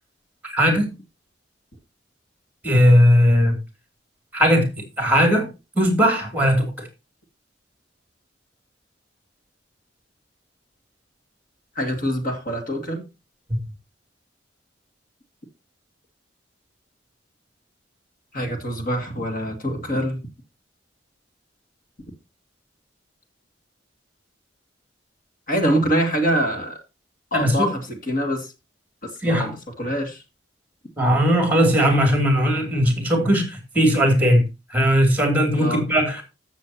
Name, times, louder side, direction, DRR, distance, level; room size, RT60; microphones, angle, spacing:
voice 1, 0.4-0.9 2.6-3.6 4.3-4.7 5.0-5.5 5.8-6.7 13.5-13.6 27.3-27.7 29.2-29.6 31.0-34.4 34.7-36.2, equal, 10° right, 2.9 m, -18 dB
voice 2, 11.8-13.0 18.3-20.2 25.5-26.8 27.3-28.5 29.2-30.2 35.6-35.8, equal, 45° left, 2.4 m, -24 dB
14.5 x 7.3 x 2.9 m
head